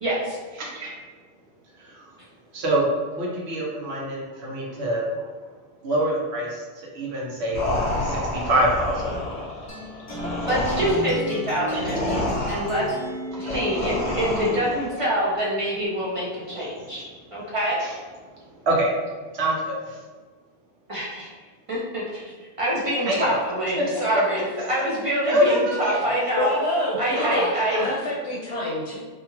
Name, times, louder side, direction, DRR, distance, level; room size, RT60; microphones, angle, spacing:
voice 1, 0.0-0.4 10.5-12.1 12.5-12.8 13.4-17.8 20.9-21.3 21.7-26.5 27.0-27.9, equal, 45° right, -6 dB, 0.5 m, -26 dB
voice 2, 0.6-0.9 1.8-2.1 2.5-5.3 5.8-6.7 6.9-7.6 8.0-9.2 11.7-11.9 13.3-13.6 17.8-17.9 18.6-18.9 19.3-20.0 23.0-23.4 23.8-24.0 25.3-26.0 27.1-27.5 27.7-27.9, right 1 dB, 75° right, -4 dB, 1.0 m, -25 dB
sound 1, 7.5-14.9, left 1 dB, 45° left, 0.8 m, -29 dB
sound 2, 9.7-14.8, equal, 25° left, 0.4 m, -34 dB
voice 3, 26.4-27.5 27.8-29.0, left 1 dB, 75° left, -5 dB, 0.8 m, -26 dB
2.7 x 2.4 x 2.9 m, 1.4 s
omnidirectional pair, 1.1 m